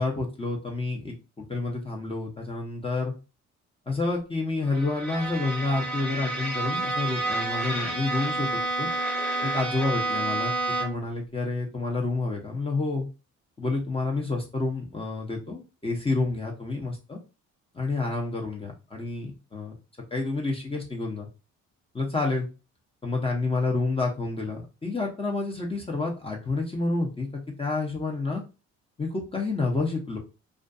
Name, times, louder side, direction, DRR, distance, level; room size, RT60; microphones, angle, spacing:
voice 1, 0.0-3.1 3.9-8.9 9.4-13.1 13.6-17.2 17.7-19.7 20.1-21.3 21.9-22.5 23.0-28.4 29.0-30.2, left 3 dB, 20° left, 0 dB, 0.7 m, -29 dB
Bowed string instrument, 4.7-11.1, right 2 dB, 5° left, 1.0 m, -29 dB
2.5 x 2.3 x 2.5 m, 0.30 s
cardioid pair, 90°, 30 cm